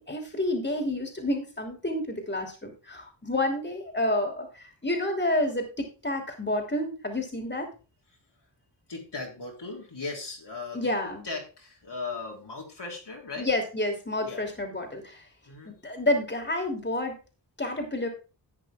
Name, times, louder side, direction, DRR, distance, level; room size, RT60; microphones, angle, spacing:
voice 1, 0.0-7.7 10.7-11.2 13.4-15.3 15.6-17.2 17.6-18.1, left 1 dB, 25° left, 4 dB, 3.0 m, -29 dB
voice 2, 8.9-10.9 11.2-13.5 14.2-14.4 15.5-15.8, left 3 dB, 65° left, -1 dB, 3.6 m, -37 dB
11.5 x 8.1 x 3.7 m, 0.33 s
cardioid pair, 55°, 45 cm